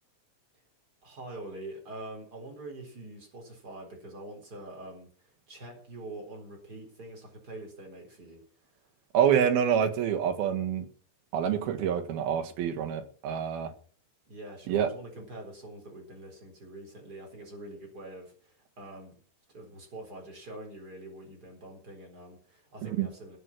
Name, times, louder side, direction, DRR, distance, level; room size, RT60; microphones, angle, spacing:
voice 1, 1.0-8.4 14.3-19.1 19.5-23.4, right 1 dB, 25° right, 4.5 m, -45 dB
voice 2, 9.1-10.9 11.3-13.7 14.7-14.9 22.8-23.1, right 8 dB, 80° right, 3.4 m, -27 dB
15.0 x 9.6 x 6.1 m
omnidirectional pair, 4.3 m